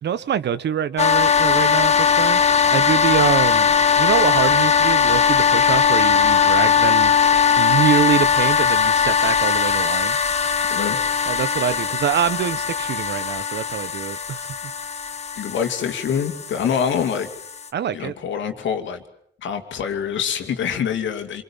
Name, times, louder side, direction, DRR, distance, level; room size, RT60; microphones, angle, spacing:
voice 1, 0.0-2.4 2.7-10.2 11.3-14.5 17.7-18.1, right 9 dB, 60° right, 15 dB, 1.2 m, -24 dB
sound 1, 1.0-17.7, left 6 dB, 35° left, 1.3 m, -19 dB
voice 2, 15.4-17.3 17.9-19.0 19.4-21.4, left 7 dB, 70° left, 6 dB, 2.5 m, -25 dB
26.5 x 22.5 x 7.2 m, 0.70 s
cardioid pair, 90°, 20 cm